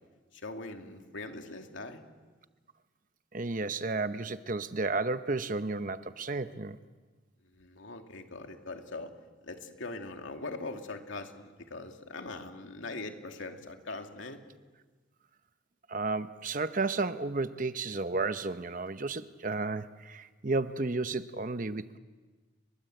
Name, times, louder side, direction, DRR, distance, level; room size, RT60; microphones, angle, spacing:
voice 1, 0.3-2.0 7.4-9.1 9.4-14.4, left 2 dB, 75° left, 2.6 m, -41 dB
voice 2, 3.3-6.8 15.9-22.0, right 3 dB, 40° right, 0.8 m, -32 dB
29.5 x 23.0 x 7.8 m
head